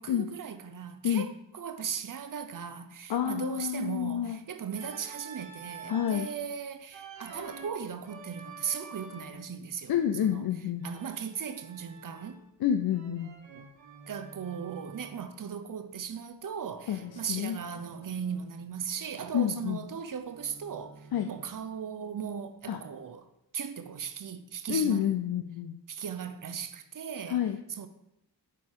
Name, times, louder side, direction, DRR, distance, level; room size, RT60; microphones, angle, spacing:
voice 1, 0.0-9.9 10.2-10.5 10.8-12.4 14.1-23.3 23.5-25.1 25.9-27.4 27.7-27.9, right 7 dB, 45° right, 0.7 m, -37 dB
voice 2, 3.1-4.4 5.9-6.3 9.9-10.9 12.6-13.3 16.9-17.6 19.3-19.8 21.1-21.3 22.7-22.8 24.7-25.8 27.3-27.6, left 9 dB, 55° left, 0.5 m, -29 dB
Organ, 4.7-6.4 6.9-9.5 10.8-12.5 12.9-15.2 16.8-18.6 18.9-21.6, right 4 dB, 70° right, 1.0 m, -49 dB
6.4 x 4.2 x 3.7 m
supercardioid pair, 45°, 46 cm